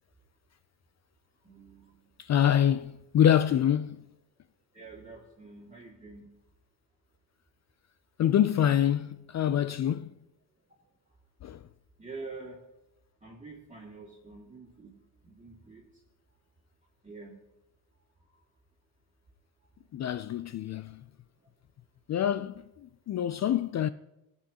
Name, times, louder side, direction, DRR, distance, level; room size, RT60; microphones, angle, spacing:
voice 1, 1.4-2.0 4.7-6.3 12.0-12.6 13.2-15.0 15.2-15.8 17.0-17.4, right 3 dB, 15° right, 2.4 m, -46 dB
voice 2, 2.2-4.0 8.2-10.1 11.4-11.6 19.9-21.0 22.1-23.9, left 10 dB, 40° left, 0.4 m, -26 dB
15.0 x 8.2 x 2.9 m
supercardioid pair, 70°, 45 cm